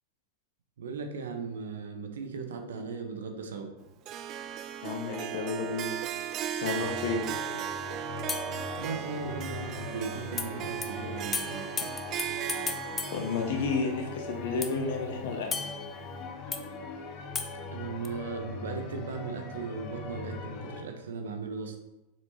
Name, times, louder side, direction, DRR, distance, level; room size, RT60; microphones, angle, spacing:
voice 1, 0.8-3.7 8.8-11.7 17.7-21.8, right 5 dB, 65° right, 5 dB, 1.0 m, -37 dB
Harp, 4.0-15.3, right 10 dB, 35° right, 0.4 m, -37 dB
voice 2, 4.8-5.9 6.5-7.2 13.1-15.6, left 4 dB, 55° left, 3 dB, 1.3 m, -31 dB
sound 1, 6.8-20.8, left 3 dB, 40° left, 1.0 m, -41 dB
sound 2, 8.3-9.5 10.4-10.5 10.8-10.9 11.3-14.1 14.6-16.6 17.4-18.1, left 5 dB, 20° left, 0.6 m, -38 dB
7.4 x 6.0 x 2.9 m, 0.99 s
figure-of-eight pair, 90°, 0 cm